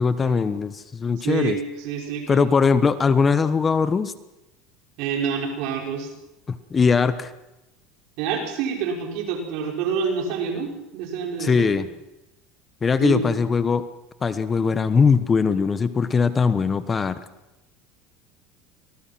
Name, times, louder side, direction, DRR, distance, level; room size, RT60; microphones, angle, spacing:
voice 1, 0.0-1.6 2.3-4.1 6.5-7.3 11.4-11.9 12.8-13.8 14.2-17.2, left 5 dB, 25° left, 13 dB, 1.1 m, -20 dB
voice 2, 1.2-2.5 5.0-6.1 8.2-11.8 13.0-13.2, right 6 dB, 70° right, 1 dB, 5.8 m, -27 dB
25.5 x 19.0 x 6.1 m, 0.95 s
supercardioid pair, 125°, 0 cm